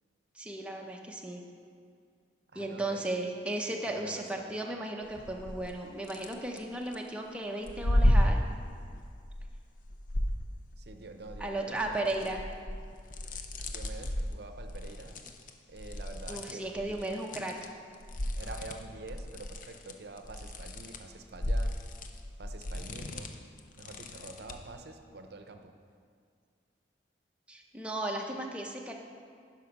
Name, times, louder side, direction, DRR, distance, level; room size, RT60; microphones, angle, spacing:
voice 1, 0.3-1.4 2.5-8.4 11.4-12.4 16.3-17.7 27.5-28.9, right 1 dB, 5° right, 0 dB, 0.7 m, -35 dB
voice 2, 2.5-3.0 3.8-4.6 10.8-12.2 13.7-15.2 15.7-17.2 18.4-21.7 22.4-23.3 23.8-25.7, right 3 dB, 60° right, 6 dB, 0.7 m, -47 dB
sound 1, 5.1-5.7 6.0-7.0 7.6-10.9 11.3-17.7 17.9-24.7, equal, 45° left, 0.6 m, -33 dB
10.5 x 5.9 x 5.3 m, 2.2 s
head